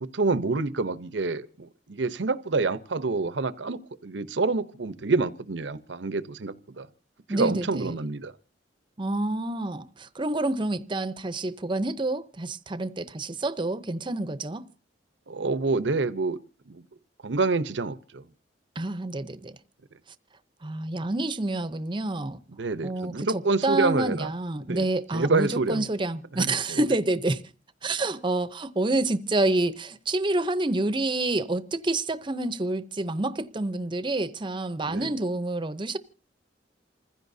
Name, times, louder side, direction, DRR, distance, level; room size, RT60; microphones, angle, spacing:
voice 1, 0.0-6.9 7.3-8.3 15.3-16.4 16.7-16.8 17.2-18.2 22.6-24.3 24.7-24.8 25.1-25.9 26.3-26.8 34.9-35.1, right 3 dB, 85° right, 0.8 m, -27 dB
voice 2, 7.3-7.9 9.0-14.6 18.8-19.5 20.6-22.4 22.8-27.4 27.8-36.0, right 2 dB, 25° right, 0.7 m, -28 dB
27.5 x 15.5 x 2.7 m
head